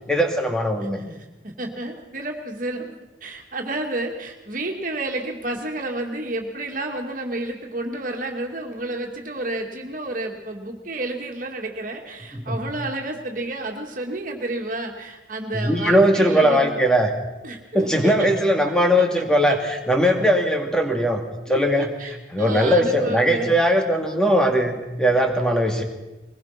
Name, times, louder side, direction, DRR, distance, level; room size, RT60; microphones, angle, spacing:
voice 1, 0.1-1.0 12.3-12.6 15.5-17.1 17.7-21.2 21.5-25.8, equal, 5° left, 3 dB, 2.5 m, -20 dB
voice 2, 0.9-2.9 3.2-16.9 17.4-18.3 18.6-18.8 19.2-19.6 21.5-23.5, right 2 dB, 45° right, 2 dB, 2.5 m, -31 dB
23.0 x 20.5 x 6.0 m, 1.0 s
head